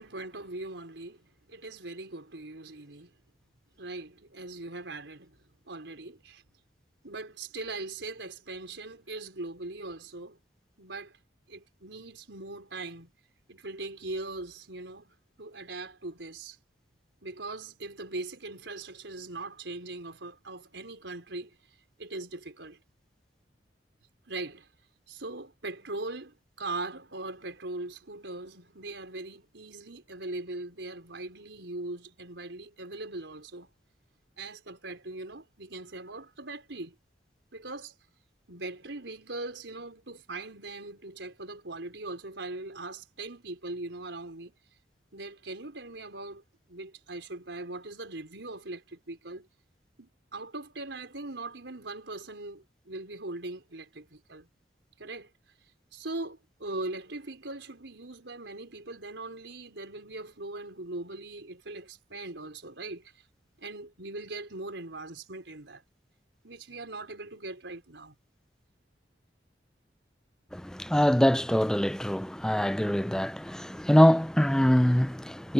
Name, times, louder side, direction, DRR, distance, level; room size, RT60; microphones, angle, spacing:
voice 1, 0.0-3.1 3.8-5.4 5.7-6.4 7.0-10.4 10.8-11.2 11.5-13.1 13.5-16.6 17.2-21.6 22.0-22.8 24.3-24.7 25.1-33.7 34.4-36.9 37.5-37.9 38.5-44.5 45.1-46.4 46.7-49.5 50.0-54.5 55.0-55.3 55.9-63.1 63.6-65.8 66.4-68.2, right 2 dB, 85° right, 4.3 m, -40 dB
voice 2, 70.5-75.5, equal, 5° left, 0.4 m, -24 dB
head